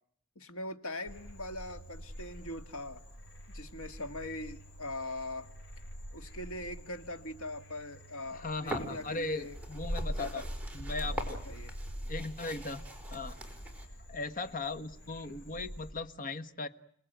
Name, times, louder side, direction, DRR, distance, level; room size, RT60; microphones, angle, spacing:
voice 1, 0.4-3.0 3.5-5.5 6.1-9.6 10.2-10.5 11.0-11.8, left 1 dB, 75° left, 8 dB, 2.1 m, -41 dB
Frog, 1.1-15.9, equal, 60° left, 7.0 m, -44 dB
voice 2, 8.3-10.5 10.7-11.4 12.1-12.8 13.1-13.3 14.1-16.7, left 3 dB, 40° left, 11 dB, 1.4 m, -38 dB
sound 1, 8.6-13.9, right 1 dB, 5° right, 4.6 m, -44 dB
30.0 x 19.5 x 9.2 m, 0.71 s
head